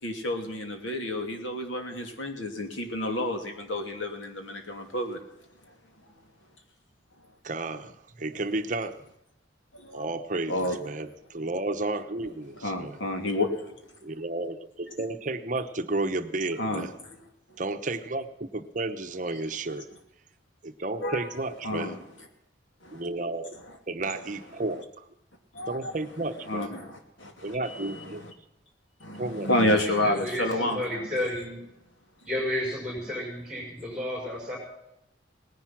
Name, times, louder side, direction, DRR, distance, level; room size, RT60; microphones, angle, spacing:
voice 1, 0.0-5.2 9.7-10.0 10.5-10.8 12.6-13.7 16.6-16.9 21.0-22.0 22.8-23.0 23.5-23.7 25.5-25.9 26.5-28.3 29.0-31.0, left 1 dB, 85° left, 4 dB, 2.8 m, -30 dB
voice 2, 7.4-9.0 9.9-13.0 14.0-16.9 17.6-19.8 20.6-21.9 22.9-23.5 23.9-25.0 25.7-26.7 27.4-28.2 29.2-29.7, right 2 dB, 40° right, 9 dB, 0.9 m, -32 dB
voice 3, 29.7-31.6 32.2-34.6, left 1 dB, 5° right, -1 dB, 6.0 m, -32 dB
19.0 x 10.5 x 5.9 m, 0.87 s
head